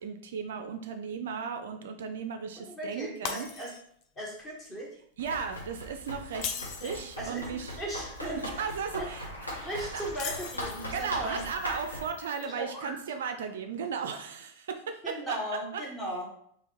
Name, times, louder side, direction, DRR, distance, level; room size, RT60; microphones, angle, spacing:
voice 1, 0.0-3.5 5.2-7.8 8.2-9.3 9.5-10.0 10.9-15.4 15.7-15.8, right 6 dB, 60° right, 6 dB, 0.3 m, -36 dB
voice 2, 2.6-3.7 4.2-4.9 6.8-8.7 9.0-9.1 9.6-11.4 12.4-12.9 15.0-16.4, right 1 dB, 15° left, -3 dB, 1.4 m, -37 dB
Shatter, 3.2-4.0 4.4-4.7 6.3-7.1 10.1-11.0, left 7 dB, 40° left, 0.4 m, -38 dB
Run, 5.2-12.1, equal, 85° left, 1.0 m, -40 dB
sound 1, 8.8-13.4, left 2 dB, 60° left, 0.9 m, -46 dB
3.3 x 3.3 x 3.0 m, 0.67 s
figure-of-eight pair, 90°, 0 cm